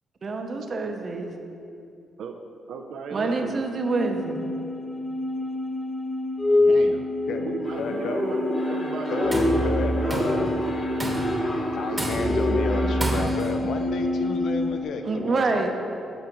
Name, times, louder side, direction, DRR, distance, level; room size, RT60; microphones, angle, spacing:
voice 1, 0.2-1.3 3.1-4.4 15.0-15.7, right 3 dB, 45° right, 4 dB, 0.7 m, -26 dB
voice 2, 2.7-3.6 6.7-10.6 11.9-12.1, right 5 dB, 80° right, 4 dB, 0.4 m, -35 dB
sound 1, 3.6-14.8, left 1 dB, 20° left, 0.8 m, -27 dB
voice 3, 7.3-8.3 9.1-10.5 11.7-15.7, left 4 dB, 75° left, 6 dB, 0.4 m, -32 dB
sound 2, 7.6-13.2, equal, 50° left, 1.2 m, -29 dB
Tools, 9.1-9.6 10.1-10.5 11.0-11.4 12.0-12.5 13.0-13.6, right 1 dB, 20° right, 1.1 m, -31 dB
13.0 x 4.8 x 3.0 m, 2.6 s
cardioid pair, 85°, 0 cm